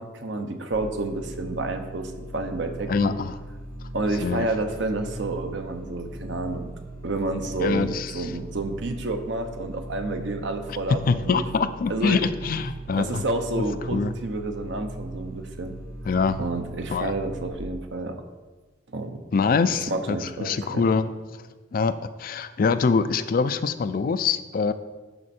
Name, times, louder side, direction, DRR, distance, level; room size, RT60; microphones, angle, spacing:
voice 1, 0.0-3.1 3.9-6.7 7.0-11.4 11.9-12.2 12.9-15.8 16.4-18.2 18.9-19.2 19.7-20.9, right 2 dB, 70° right, 6 dB, 0.8 m, -30 dB
sound 1, 0.7-17.5, right 1 dB, 50° right, 1.1 m, -39 dB
voice 2, 2.9-3.4 4.2-4.5 7.6-8.3 10.9-13.2 13.9-14.1 16.0-16.4 16.9-17.1 19.3-21.1 21.7-24.7, left 5 dB, 50° left, 12 dB, 0.4 m, -24 dB
11.0 x 4.4 x 4.3 m, 1.3 s
head